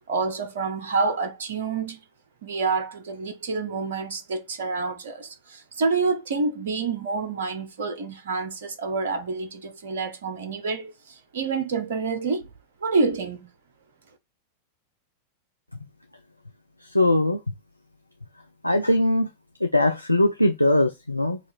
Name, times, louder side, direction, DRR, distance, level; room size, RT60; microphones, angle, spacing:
voice 1, 0.1-2.0 2.4-12.5 12.8-13.5, right 4 dB, 60° right, 0.8 m, -28 dB
voice 2, 16.8-17.4 18.6-19.3 19.6-21.4, left 1 dB, 85° left, 0.4 m, -21 dB
4.8 x 2.4 x 4.5 m
figure-of-eight pair, 90°, 0 cm